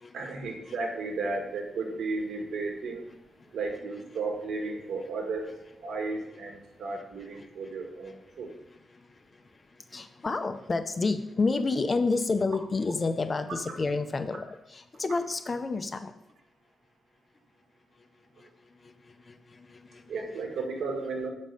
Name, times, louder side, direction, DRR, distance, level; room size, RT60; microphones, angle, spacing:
voice 1, 0.1-3.1 3.5-8.5 20.1-21.3, right 3 dB, 75° right, 2 dB, 1.6 m, -34 dB
voice 2, 9.9-14.5 14.7-16.1 19.3-20.0, left 3 dB, 30° left, 9 dB, 0.6 m, -29 dB
7.5 x 5.3 x 5.3 m, 0.83 s
wide cardioid pair, 130°, 0 cm